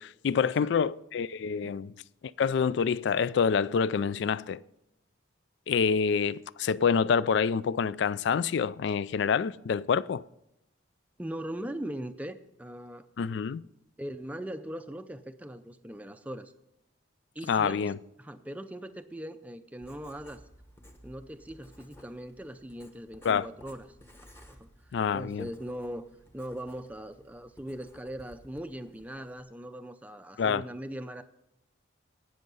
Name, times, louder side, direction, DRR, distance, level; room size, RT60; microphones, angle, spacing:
voice 1, 0.0-1.9 2.4-4.6 5.7-10.2 13.2-13.6 17.5-18.0 23.2-23.5 24.9-25.5 30.4-30.6, left 6 dB, 60° left, 0.3 m, -27 dB
voice 2, 11.2-13.1 14.0-16.5 17.3-20.4 21.0-23.9 24.4-26.1 26.3-31.2, right 1 dB, 5° right, 0.4 m, -40 dB
Writing, 19.8-29.4, equal, 10° left, 1.1 m, -56 dB
17.5 x 6.4 x 5.4 m
head